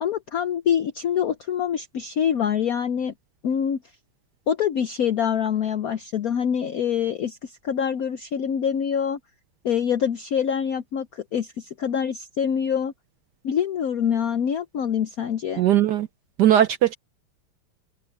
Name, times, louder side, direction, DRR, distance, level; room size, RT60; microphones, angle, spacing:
voice 1, 0.0-3.1 3.4-3.8 4.5-9.2 9.6-12.9 13.4-15.6, left 8 dB, 70° left, 0.8 m, -25 dB
voice 2, 15.6-16.1 16.4-16.9, right 11 dB, 70° right, 1.0 m, -18 dB
open air
omnidirectional pair, 2.4 m